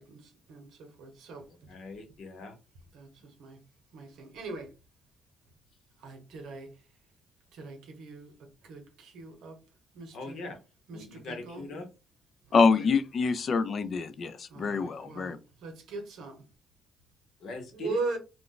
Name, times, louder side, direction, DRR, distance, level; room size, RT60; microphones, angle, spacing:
voice 1, 0.0-1.7 2.9-3.6 3.9-4.7 6.0-6.7 7.5-8.3 8.6-9.6 9.9-10.4 10.9-11.7 12.5-13.0 14.5-16.4 17.7-18.2, right 3 dB, 80° right, 0.9 m, -40 dB
voice 2, 1.7-2.6 10.1-10.6 10.9-11.9 17.4-18.2, left 2 dB, 70° left, 0.9 m, -40 dB
voice 3, 12.5-15.4, left 5 dB, 50° left, 0.4 m, -26 dB
2.4 x 2.2 x 3.7 m
cardioid pair, 90°, 0 cm